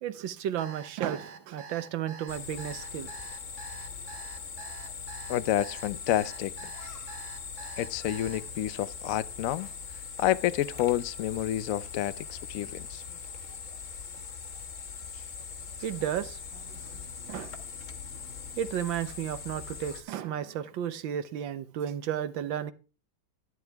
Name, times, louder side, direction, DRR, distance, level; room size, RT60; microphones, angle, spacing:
voice 1, 0.0-3.1 15.8-17.5 18.6-22.7, right 10 dB, 75° right, 1.6 m, -33 dB
Alarm, 0.6-8.4, right 4 dB, 60° right, 1.9 m, -46 dB
sound 1, 2.3-20.0, left 6 dB, 45° left, 1.4 m, -41 dB
voice 2, 5.3-6.7 7.8-9.7 10.2-13.0, left 13 dB, 75° left, 0.7 m, -29 dB
11.0 x 11.0 x 3.4 m
omnidirectional pair, 2.1 m